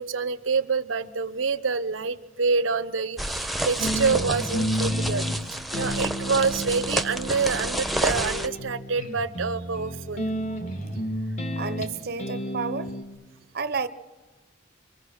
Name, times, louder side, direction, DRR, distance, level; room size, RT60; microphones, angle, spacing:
voice 1, 0.0-10.6, right 5 dB, 85° right, 0.8 m, -27 dB
sound 1, 3.2-8.5, right 1 dB, ahead, 0.9 m, -30 dB
sound 2, 3.8-13.0, equal, 40° left, 2.1 m, -31 dB
voice 2, 11.6-12.9 13.5-13.9, right 5 dB, 55° right, 0.7 m, -30 dB
25.5 x 24.0 x 6.4 m
head